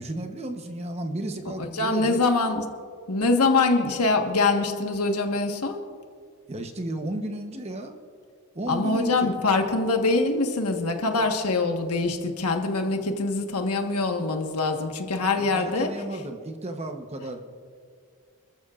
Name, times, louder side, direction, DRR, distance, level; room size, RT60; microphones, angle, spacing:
voice 1, 0.0-2.2 6.5-8.0 8.5-9.4 15.3-17.4, right 1 dB, 30° right, 5 dB, 0.9 m, -33 dB
voice 2, 1.7-2.6 3.1-5.8 8.7-15.9, left 3 dB, 85° left, 4 dB, 1.4 m, -24 dB
28.5 x 13.5 x 2.5 m, 2.2 s
head